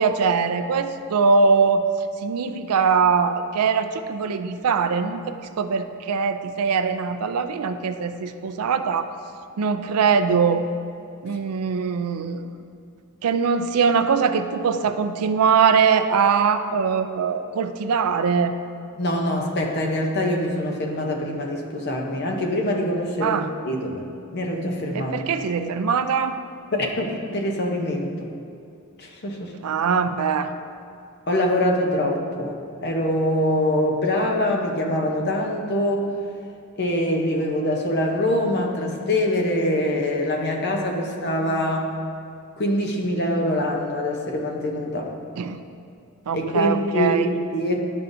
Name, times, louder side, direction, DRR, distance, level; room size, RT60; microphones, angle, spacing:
voice 1, 0.0-1.8 2.2-9.1 9.6-10.7 11.2-12.5 13.2-18.5 23.2-23.5 24.9-26.4 29.6-30.5 41.1-41.3 45.4-45.6 46.3-47.3, right 5 dB, 85° right, 9 dB, 0.4 m, -22 dB
voice 2, 19.0-24.1 24.3-25.1 26.7-28.3 29.0-29.5 31.3-36.1 36.8-41.9 42.6-45.1 46.3-47.8, left 1 dB, 50° left, 1 dB, 0.8 m, -24 dB
11.0 x 5.5 x 2.6 m, 2.5 s
head